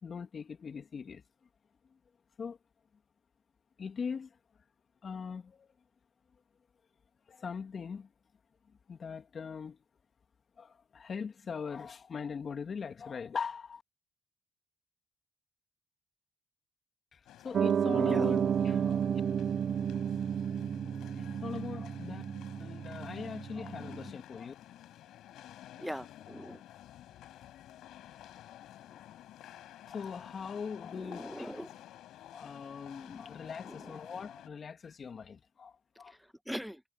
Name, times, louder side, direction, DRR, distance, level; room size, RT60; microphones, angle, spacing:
voice 1, 0.0-1.2 2.4-2.6 3.8-4.3 5.0-5.7 7.3-8.1 8.9-9.8 10.6-13.8 17.1-19.2 21.2-22.2 22.6-24.5 29.9-31.5 32.3-36.2, left 6 dB, 45° left, 2.7 m, -41 dB
sound 1, 17.3-34.5, left 13 dB, 85° left, 5.5 m, -52 dB
Piano, 17.5-24.1, right 8 dB, 55° right, 0.8 m, -32 dB
voice 2, 25.8-26.6 31.0-31.7 33.7-33.9 36.5-36.8, equal, ahead, 1.4 m, -41 dB
cardioid pair, 90°, 0 cm